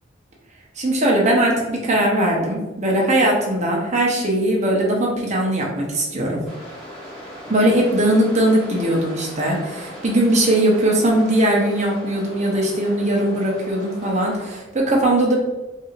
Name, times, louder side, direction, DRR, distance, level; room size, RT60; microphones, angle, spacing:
voice 1, 0.8-6.4 7.5-15.4, right 1 dB, 40° right, -2 dB, 0.9 m, -19 dB
sound 1, 6.5-14.6, equal, 5° left, 1.3 m, -38 dB
4.7 x 2.7 x 2.5 m, 1.1 s
head